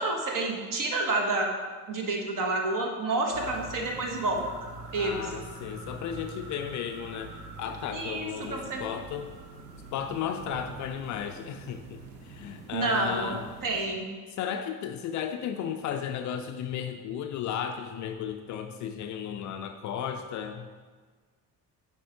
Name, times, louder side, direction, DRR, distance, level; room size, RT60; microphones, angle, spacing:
voice 1, 0.0-1.5 1.9-4.4 4.9-5.3 7.9-8.8 12.7-13.4 13.6-14.1, right 2 dB, 40° right, 2 dB, 1.4 m, -29 dB
sound 1, 3.3-13.9, right 3 dB, 75° right, 1.0 m, -45 dB
voice 2, 5.0-9.3 9.9-13.4 14.4-20.7, left 8 dB, 40° left, 7 dB, 0.5 m, -34 dB
9.8 x 3.8 x 4.8 m, 1.5 s
figure-of-eight pair, 50°, 48 cm